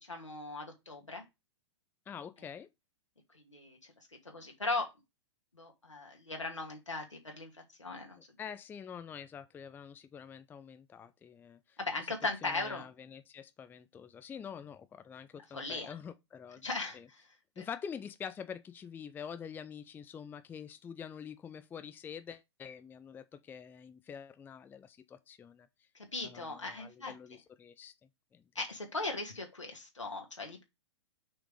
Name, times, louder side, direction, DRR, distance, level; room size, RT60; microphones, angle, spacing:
voice 1, 0.0-1.2 3.3-3.8 4.3-4.9 5.5-7.5 7.8-8.2 11.8-12.8 15.5-15.9 16.6-17.2 17.6-17.7 25.9-27.1 28.5-30.6, left 3 dB, 90° left, 2.4 m, -38 dB
voice 2, 2.1-2.7 8.4-11.8 12.4-16.7 16.9-17.1 17.6-25.7 26.2-27.9 28.3-28.4, left 7 dB, 15° left, 0.5 m, -46 dB
6.2 x 5.0 x 4.8 m
figure-of-eight pair, 110°, 15 cm